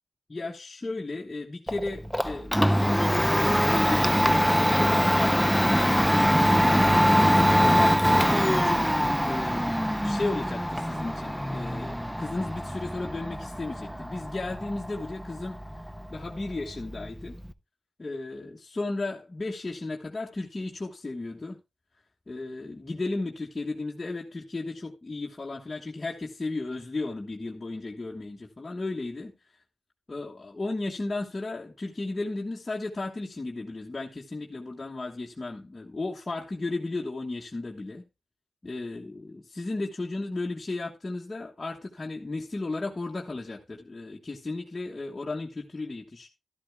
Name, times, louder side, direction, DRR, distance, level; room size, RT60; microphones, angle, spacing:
voice 1, 0.3-6.4 7.2-9.8 10.0-15.6 16.1-17.3 18.0-21.6 22.3-29.6 30.1-38.0 38.6-46.3, left 2 dB, 30° left, 1.3 m, -34 dB
Domestic sounds home sounds, 1.7-17.5, equal, ahead, 0.6 m, -24 dB
13.0 x 11.5 x 2.2 m
cardioid pair, 70°, 0 cm